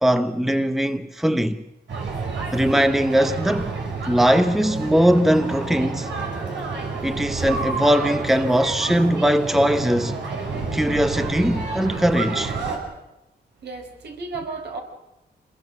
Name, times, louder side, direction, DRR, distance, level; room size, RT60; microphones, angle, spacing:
voice 1, 0.0-1.6 2.5-3.8 4.0-6.1 7.0-10.1 10.7-12.6, equal, ahead, 0.9 m, -20 dB
sound 1, 1.9-12.8, right 4 dB, 85° right, 5.9 m, -29 dB
voice 2, 13.6-14.8, right 3 dB, 65° right, 4.9 m, -33 dB
26.5 x 21.5 x 6.2 m
cardioid pair, 105°, 18 cm